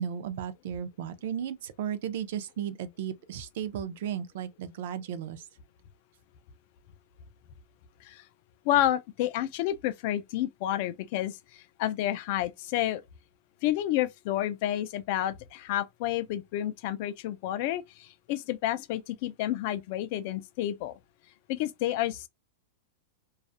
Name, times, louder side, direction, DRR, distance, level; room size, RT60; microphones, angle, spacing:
voice 1, 0.0-5.4, right 9 dB, 55° right, 0.4 m, -35 dB
voice 2, 8.6-13.0 13.6-21.0 21.5-22.3, left 13 dB, 45° left, 0.3 m, -30 dB
2.3 x 2.0 x 2.6 m
supercardioid pair, 165°, 0 cm